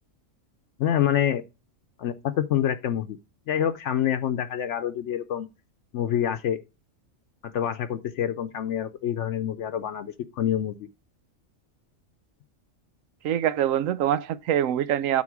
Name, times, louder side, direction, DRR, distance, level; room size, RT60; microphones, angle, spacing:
voice 1, 0.8-1.4 2.0-3.2 3.5-5.5 5.9-6.6 7.4-10.9, left 10 dB, 70° left, 0.9 m, -26 dB
voice 2, 13.2-15.2, right 10 dB, 90° right, 1.0 m, -24 dB
8.5 x 4.2 x 5.9 m
omnidirectional pair, 1.3 m